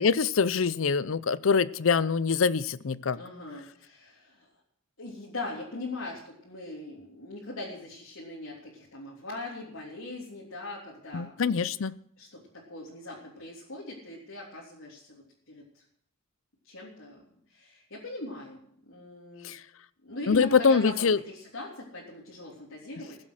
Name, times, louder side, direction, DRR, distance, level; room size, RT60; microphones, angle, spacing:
voice 1, 0.0-3.2 11.1-11.9 19.4-19.6 20.3-21.2, left 5 dB, 70° left, 18 dB, 0.5 m, -24 dB
voice 2, 3.2-4.5 5.0-11.6 12.2-15.8 16.6-17.2 17.5-19.5 20.0-23.2, left 2 dB, 90° left, -6 dB, 3.4 m, -41 dB
20.0 x 7.7 x 6.3 m, 0.67 s
head